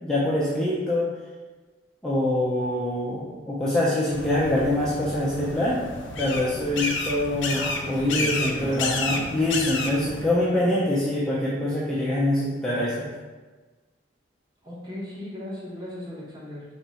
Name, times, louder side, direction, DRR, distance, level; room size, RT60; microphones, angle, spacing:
voice 1, 0.0-1.1 2.0-5.9 6.2-13.1, left 1 dB, 5° left, -8 dB, 0.4 m, -24 dB
sound 1, 4.1-10.3, left 3 dB, 90° left, 0.4 m, -31 dB
voice 2, 7.5-9.4 10.5-11.1 14.6-16.6, equal, 25° right, -6 dB, 0.9 m, -37 dB
3.5 x 2.1 x 4.1 m, 1.3 s
head